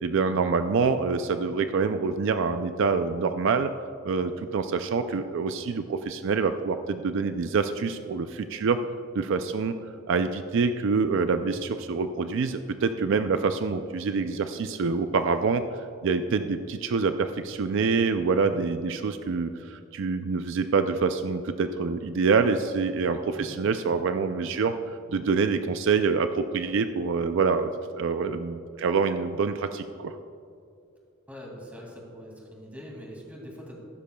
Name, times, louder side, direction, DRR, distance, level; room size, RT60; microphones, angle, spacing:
voice 1, 0.0-3.7 4.0-8.8 9.1-9.7 10.1-15.6 16.0-30.2, right 5 dB, 65° right, 9 dB, 0.4 m, -26 dB
voice 2, 31.3-33.9, equal, 10° right, -2 dB, 2.3 m, -43 dB
15.0 x 12.0 x 2.3 m, 2.5 s
head